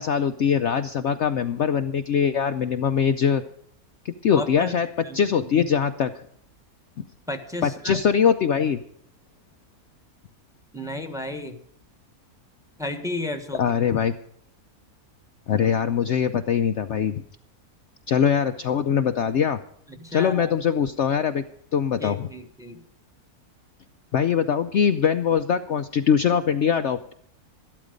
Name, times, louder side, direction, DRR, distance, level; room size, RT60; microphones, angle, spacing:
voice 1, 0.0-3.4 4.0-4.9 5.1-6.2 7.6-8.8 13.6-14.1 15.5-17.2 18.1-19.6 20.1-21.4 21.7-22.3 24.1-27.1, left 7 dB, 60° left, 8 dB, 0.8 m, -22 dB
voice 2, 4.3-4.7 5.0-5.6 7.3-8.0 10.7-11.6 12.8-13.6 19.9-20.6 22.0-22.8, left 1 dB, ahead, 7 dB, 1.3 m, -33 dB
13.5 x 12.0 x 5.1 m, 0.68 s
omnidirectional pair, 1.6 m